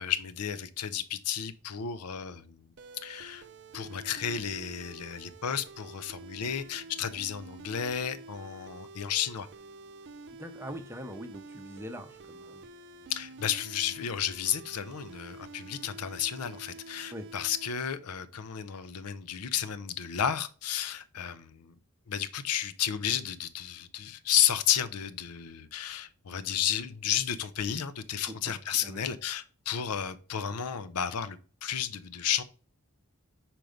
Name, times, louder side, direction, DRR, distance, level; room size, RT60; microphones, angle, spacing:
voice 1, 0.0-2.7 3.0-3.4 3.7-9.5 13.1-21.7 22.1-32.4, left 9 dB, 90° left, 0.6 m, -32 dB
sound 1, 2.8-17.7, right 3 dB, 50° right, 0.5 m, -48 dB
voice 2, 10.4-12.7 17.1-17.3 28.3-28.4 28.8-29.1, equal, 10° right, 0.6 m, -42 dB
5.2 x 4.5 x 5.0 m
head